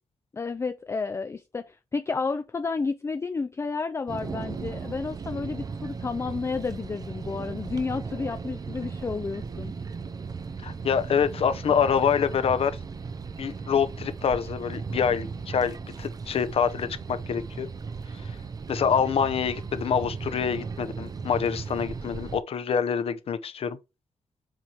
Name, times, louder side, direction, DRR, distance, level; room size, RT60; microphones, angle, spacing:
voice 1, 0.3-9.7, left 4 dB, 25° left, 0.4 m, -31 dB
sound 1, 4.1-22.4, right 5 dB, 35° right, 0.5 m, -36 dB
voice 2, 10.6-12.8 13.4-17.7 18.7-23.8, left 7 dB, 60° left, 0.7 m, -26 dB
7.4 x 4.5 x 2.8 m
cardioid pair, 105°, 11 cm